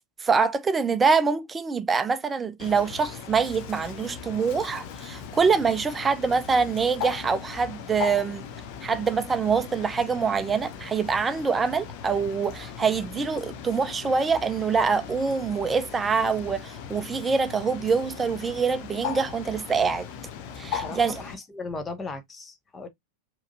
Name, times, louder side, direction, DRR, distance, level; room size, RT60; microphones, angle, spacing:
voice 1, 0.2-8.4 8.8-20.1 20.6-21.2, right 5 dB, 15° right, 0.5 m, -25 dB
Bird, 2.6-21.3, left 7 dB, 45° left, 0.7 m, -38 dB
voice 2, 20.7-22.9, left 3 dB, 15° left, 0.8 m, -37 dB
4.9 x 3.1 x 2.6 m
figure-of-eight pair, 90°, 0 cm